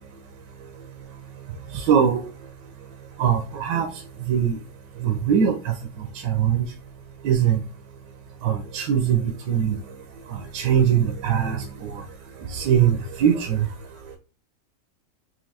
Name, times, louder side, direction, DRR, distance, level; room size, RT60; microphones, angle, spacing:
voice 1, 1.7-2.2 3.2-3.9 4.3-4.6 5.0-5.7 6.2-6.6 7.2-7.6 8.4-9.8 10.3-12.0 12.5-13.7, right 8 dB, 75° right, 3 dB, 1.2 m, -21 dB
4.3 x 2.6 x 2.7 m, 0.34 s
omnidirectional pair, 1.9 m